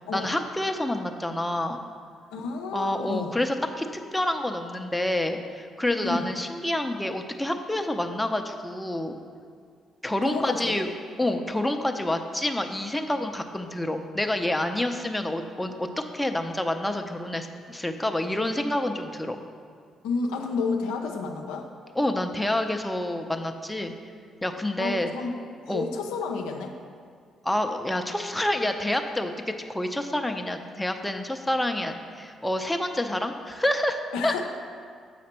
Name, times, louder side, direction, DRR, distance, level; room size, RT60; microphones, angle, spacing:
voice 1, 0.1-1.8 2.7-3.9 4.1-9.2 10.0-10.9 11.2-19.4 21.9-23.9 24.4-25.1 25.7-25.9 27.4-34.4, left 1 dB, 10° left, 5 dB, 0.6 m, -28 dB
voice 2, 2.3-3.3 6.0-6.3 10.2-10.8 11.2-11.4 20.0-21.7 24.8-26.7 34.1-34.4, left 4 dB, 85° left, 3 dB, 0.5 m, -31 dB
7.7 x 5.0 x 4.3 m, 2.1 s
hypercardioid pair, 50°, 0 cm